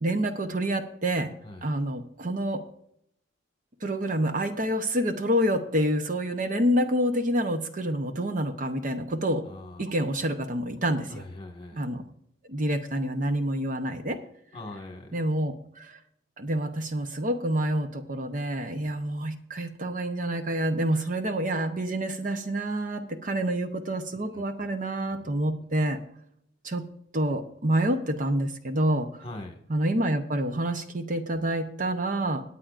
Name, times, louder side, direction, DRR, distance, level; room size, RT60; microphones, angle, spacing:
voice 1, 0.0-1.3 1.6-2.6 3.8-9.5 9.8-11.2 11.7-12.0 12.5-14.2 15.1-16.0 16.4-26.0 26.6-26.8 27.1-29.2 29.7-32.4, right 1 dB, 45° right, 7 dB, 0.8 m, -27 dB
voice 2, 9.4-9.8 11.1-11.8 14.5-15.2 24.3-24.4 25.2-25.3 29.2-29.6, left 2 dB, 30° left, 3 dB, 1.7 m, -41 dB
19.0 x 8.5 x 2.5 m, 0.70 s
head